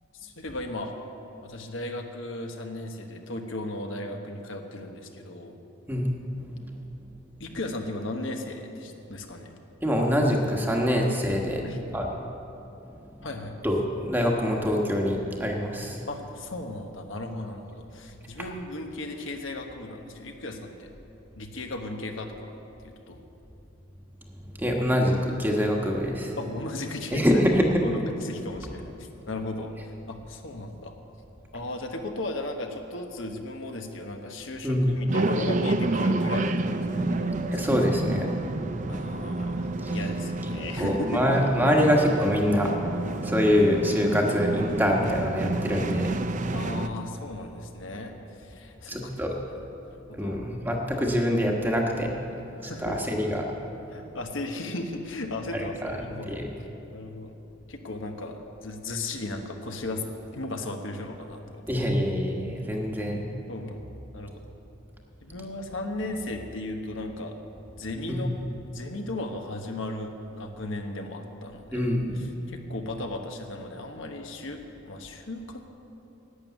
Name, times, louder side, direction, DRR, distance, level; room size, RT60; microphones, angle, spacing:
voice 1, 0.1-1.0 1.4-5.6 7.4-9.5 11.6-11.8 13.2-13.6 16.1-20.9 21.4-22.5 22.8-23.2 26.4-27.4 27.8-31.0 31.5-37.3 37.6-37.7 38.9-41.4 46.5-49.1 50.1-50.4 52.6-53.0 53.9-56.7 56.9-57.3 57.7-61.6 63.5-63.8 64.1-64.6 65.2-67.3 67.8-68.4 68.7-75.7, left 2 dB, 70° left, 4 dB, 1.2 m, -36 dB
voice 2, 9.8-11.6 11.9-12.1 13.6-16.0 24.6-26.4 27.1-27.8 34.6-35.0 37.5-38.3 39.8-40.0 40.8-42.7 43.2-46.1 48.9-49.4 50.1-52.1 52.6-53.5 55.5-55.9 56.2-56.5 61.7-63.3 68.1-68.2 71.7-72.2, equal, 10° right, 0 dB, 1.3 m, -25 dB
sound 1, 35.1-46.9, right 2 dB, 35° right, 0.5 m, -29 dB
11.5 x 8.9 x 9.2 m, 2.9 s
head